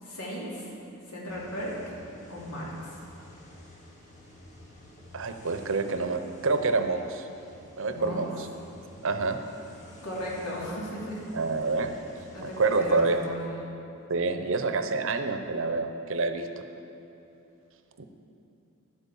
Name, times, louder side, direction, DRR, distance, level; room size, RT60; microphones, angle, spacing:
voice 1, 0.0-0.7 1.1-1.8 2.3-3.0 7.9-8.3 10.0-11.2 11.7-11.8 12.3-13.5, equal, 85° left, -5 dB, 2.9 m, -36 dB
sound 1, 1.3-13.3, left 1 dB, 30° left, 1.7 m, -51 dB
voice 2, 5.1-7.3 7.7-8.5 9.0-9.4 11.3-11.9 12.4-13.2 14.1-16.5 18.0-18.1, right 3 dB, 60° right, 8 dB, 0.7 m, -27 dB
11.5 x 8.3 x 7.0 m, 2.8 s
head